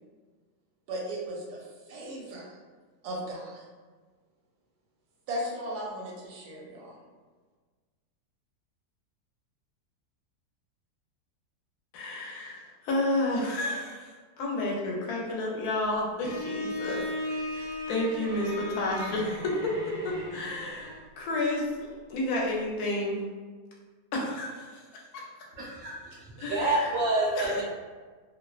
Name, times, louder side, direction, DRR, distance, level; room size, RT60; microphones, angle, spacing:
voice 1, 0.9-2.6 3.0-3.6 5.3-7.0, right 1 dB, 90° right, -2 dB, 1.1 m, -36 dB
voice 2, 11.9-12.6 12.8-14.1 14.4-19.6 20.0-21.7 22.1-23.2 24.1-24.8 26.4-26.9 27.4-27.6, left 2 dB, 75° left, -2 dB, 1.1 m, -31 dB
Bowed string instrument, 16.2-21.1, left 1 dB, 50° right, 0.5 m, -37 dB
voice 3, 25.6-25.9 26.4-27.6, right 2 dB, 65° right, -5 dB, 0.9 m, -27 dB
2.8 x 2.1 x 2.3 m, 1.4 s
omnidirectional pair, 1.6 m